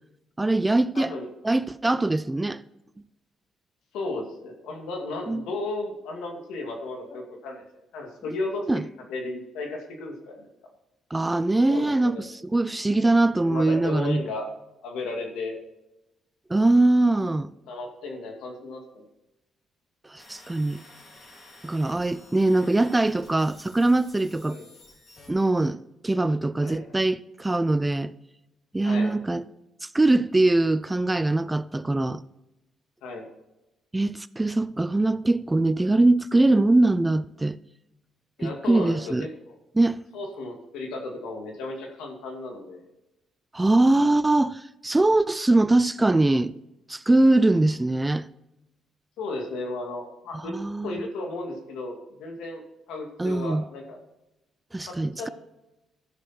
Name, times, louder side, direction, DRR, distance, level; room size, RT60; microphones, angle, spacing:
voice 1, 0.4-1.1 1.4-2.6 5.3-5.4 8.7-8.8 11.1-12.2 12.5-14.2 16.5-17.5 20.1-20.8 21.6-24.6 25.3-28.1 28.7-29.4 29.8-32.2 33.9-37.6 38.4-39.3 39.8-40.0 43.5-46.5 46.9-48.3 50.4-51.0 53.2-53.6 54.7-55.3, right 2 dB, 15° right, 0.4 m, -22 dB
voice 2, 0.9-1.3 3.9-8.7 9.1-10.5 11.7-12.3 13.4-14.5 14.8-15.6 17.7-19.0 24.5-24.7 26.6-26.9 28.8-29.2 33.0-33.3 38.4-39.5 40.1-42.8 49.2-50.5 50.8-52.6 52.9-54.0 54.9-55.3, left 2 dB, 90° left, 2.2 m, -34 dB
sound 1, 20.2-25.3, left 2 dB, 50° left, 4.0 m, -51 dB
13.5 x 6.5 x 4.4 m
cardioid pair, 90°, 0 cm